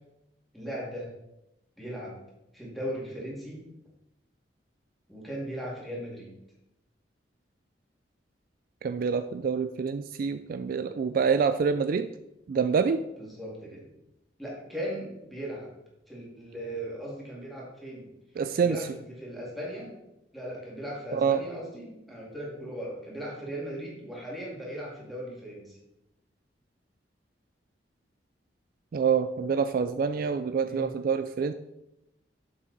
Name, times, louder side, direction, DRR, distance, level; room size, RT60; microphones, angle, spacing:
voice 1, 0.5-1.1 1.8-2.2 2.5-3.7 5.1-6.3 13.2-13.9 14.4-15.7 16.1-18.1 18.6-19.9 20.3-25.8 30.7-31.0, equal, ahead, -5 dB, 2.1 m, -38 dB
voice 2, 8.8-12.1 12.5-13.0 18.4-18.8 21.1-21.4 28.9-31.5, right 6 dB, 55° right, 10 dB, 0.3 m, -26 dB
7.3 x 5.7 x 4.0 m, 0.89 s
head